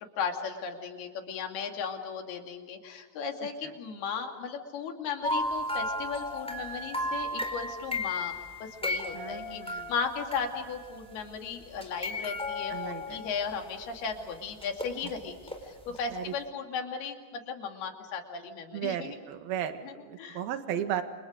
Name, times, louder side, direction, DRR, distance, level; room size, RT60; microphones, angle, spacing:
voice 1, 0.2-15.4 15.6-19.2 19.8-20.4, left 6 dB, 70° left, 4 dB, 4.4 m, -36 dB
sound 1, 5.2-11.1 11.7-13.8 14.6-15.6 15.9-16.0, left 1 dB, ahead, 3.8 m, -34 dB
voice 2, 9.1-9.9 12.7-13.2 16.1-16.3 18.7-21.0, right 10 dB, 70° right, 7 dB, 3.4 m, -35 dB
29.0 x 28.5 x 5.1 m, 1.4 s
omnidirectional pair, 4.8 m